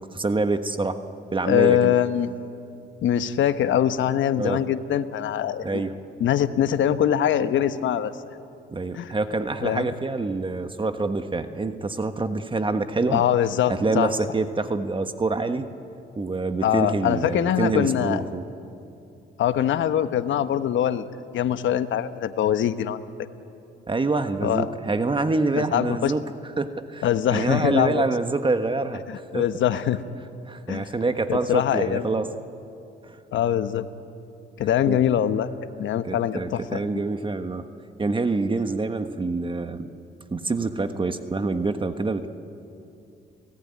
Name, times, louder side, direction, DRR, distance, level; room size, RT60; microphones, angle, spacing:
voice 1, 0.1-1.0 1.3-1.9 4.4-4.6 5.6-5.9 8.7-13.2 13.7-15.7 16.2-18.4 23.9-26.2 26.6-29.0 29.3-29.5 30.5-32.3 33.0-33.2 34.9-35.0 36.1-37.6 38.0-39.9 40.3-42.3, right 3 dB, 25° right, 8 dB, 1.3 m, -26 dB
voice 2, 1.4-2.3 3.0-5.8 6.2-8.1 8.9-9.1 9.6-9.9 13.1-14.1 16.6-18.2 19.4-21.1 21.3-23.0 24.4-24.7 25.5-26.1 27.0-28.1 29.1-30.0 30.7-30.9 31.3-32.1 33.3-33.9 34.6-35.5 35.8-36.9, left 10 dB, 75° left, 11 dB, 1.2 m, -23 dB
29.5 x 18.0 x 9.7 m, 2.7 s
cardioid pair, 90°, 20 cm